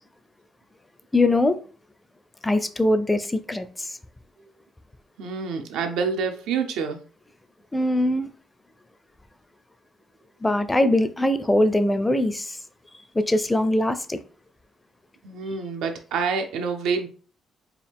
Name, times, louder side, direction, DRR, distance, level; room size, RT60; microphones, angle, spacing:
voice 1, 1.1-1.6 2.4-3.9 7.7-8.3 10.4-12.6 13.1-14.2, left 1 dB, 15° left, 0.5 m, -22 dB
voice 2, 5.2-7.0 15.2-17.1, right 5 dB, 90° right, 0.8 m, -27 dB
4.7 x 2.4 x 3.6 m
cardioid pair, 90°, 0 cm